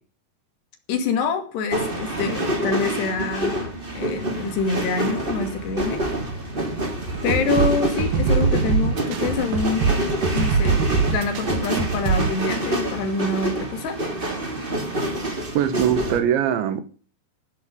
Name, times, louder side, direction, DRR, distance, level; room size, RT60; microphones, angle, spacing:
voice 1, 0.9-6.0 7.2-9.8 10.3-10.8 11.1-14.0, left 4 dB, 65° left, 4.4 m, -26 dB
sound 1, 1.7-16.2, right 1 dB, 15° right, 2.5 m, -27 dB
sound 2, 7.1-12.3, right 5 dB, 60° right, 3.0 m, -22 dB
voice 2, 15.6-16.8, right 9 dB, 80° right, 3.8 m, -21 dB
14.0 x 13.0 x 5.4 m
omnidirectional pair, 5.2 m